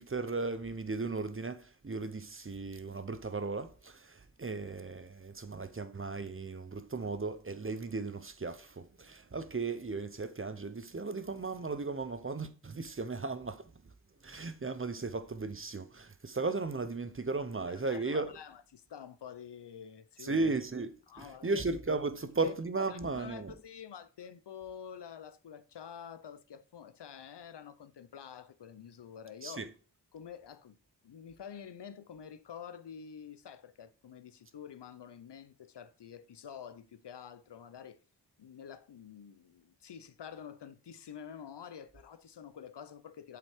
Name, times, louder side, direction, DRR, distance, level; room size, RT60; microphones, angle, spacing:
voice 1, 0.0-13.9 14.2-18.4 20.2-23.5 29.4-29.7, right 3 dB, 30° right, 0.7 m, -36 dB
voice 2, 17.6-20.4 21.1-21.6 22.4-22.5 22.8-29.7 30.1-30.8 31.0-38.0 38.4-43.4, left 8 dB, 65° left, 0.7 m, -48 dB
7.5 x 5.9 x 3.5 m
wide cardioid pair, 55°, 44 cm